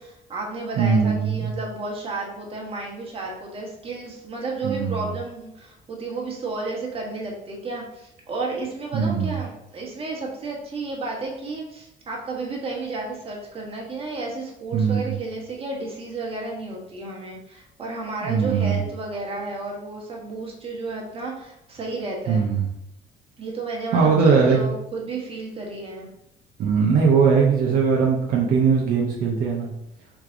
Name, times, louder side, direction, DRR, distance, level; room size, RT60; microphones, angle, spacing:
voice 1, 0.0-22.5 23.4-26.1, right 3 dB, 35° right, -2 dB, 1.3 m, -32 dB
voice 2, 0.8-1.5 4.6-5.0 8.9-9.4 14.7-15.1 18.2-18.8 22.3-22.6 23.9-24.6 26.6-29.7, right 5 dB, 65° right, -2 dB, 0.7 m, -20 dB
3.5 x 3.3 x 3.7 m, 0.83 s
cardioid pair, 110°, 17 cm